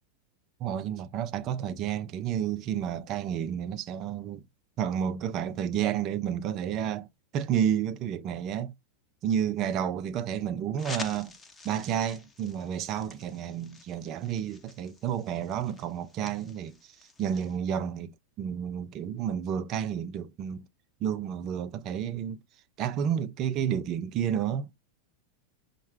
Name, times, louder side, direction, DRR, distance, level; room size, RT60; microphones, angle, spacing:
voice 1, 0.6-4.4 4.8-7.1 7.3-8.7 9.2-11.3 11.6-16.9 17.2-18.1 18.4-20.6 21.0-22.4 22.8-24.7, right 9 dB, 35° right, 0.4 m, -30 dB
sound 1, 10.8-17.6, left 3 dB, 15° left, 0.7 m, -47 dB
6.3 x 2.2 x 3.1 m
figure-of-eight pair, 90°, 0 cm